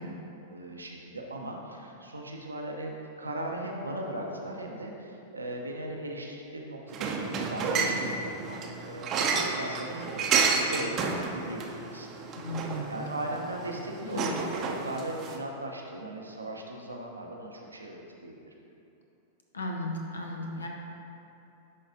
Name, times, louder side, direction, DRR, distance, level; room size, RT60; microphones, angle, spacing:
voice 1, 0.0-12.1 12.9-18.5, right 1 dB, 85° right, 0 dB, 0.7 m, -38 dB
sound 1, 6.9-15.4, right 5 dB, 35° right, 0.6 m, -31 dB
voice 2, 12.3-12.9 14.0-14.4 19.5-20.7, left 1 dB, 80° left, 1 dB, 0.8 m, -35 dB
11.0 x 4.0 x 2.6 m, 2.9 s
figure-of-eight pair, 95°, 0 cm